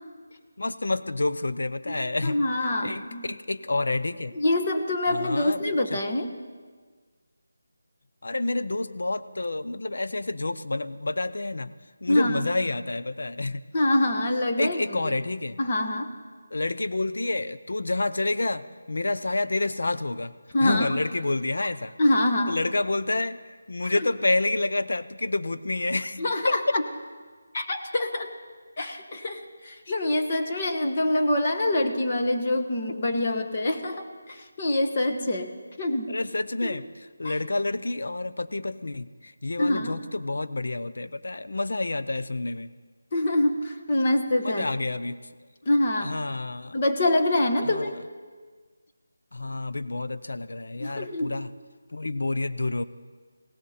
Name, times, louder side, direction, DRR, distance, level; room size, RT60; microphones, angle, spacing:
voice 1, 0.6-2.4 2.8-4.3 5.1-5.6 8.2-11.7 12.0-13.6 14.6-15.6 16.5-20.3 20.6-21.9 22.5-23.4 23.7-26.2 26.5-26.6 36.1-42.7 44.4-45.2 46.0-46.8 47.7-47.9 49.3-51.5 51.9-52.8, left 2 dB, 70° left, 12 dB, 0.7 m, -28 dB
voice 2, 1.9-3.3 4.3-6.3 12.1-12.5 13.7-15.1 15.6-16.1 20.5-20.9 21.6-21.7 22.0-22.6 23.9-24.1 26.2-26.8 27.5-28.3 28.8-35.5 35.8-36.1 36.6-36.8 37.2-37.4 39.6-40.0 43.1-44.7 45.6-46.1 46.7-47.9 50.8-51.3, left 1 dB, 25° left, 3 dB, 1.2 m, -25 dB
19.0 x 17.5 x 4.3 m, 1.5 s
figure-of-eight pair, 175°, 0 cm